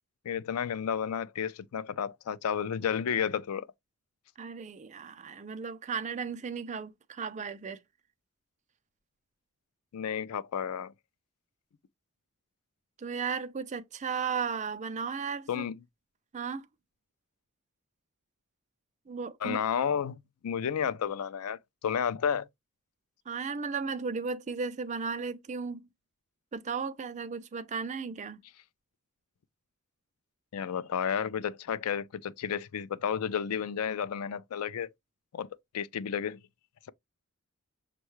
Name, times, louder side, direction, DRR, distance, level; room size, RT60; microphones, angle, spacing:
voice 1, 0.2-3.7 9.9-10.9 15.5-15.8 19.4-22.5 30.5-34.9 35.3-35.5 35.7-36.4, left 7 dB, 80° left, 0.4 m, -32 dB
voice 2, 4.4-7.8 13.0-15.6 16.3-16.7 19.1-19.6 23.3-25.8 26.5-28.4, right 5 dB, 35° right, 0.4 m, -35 dB
6.2 x 2.3 x 3.0 m
head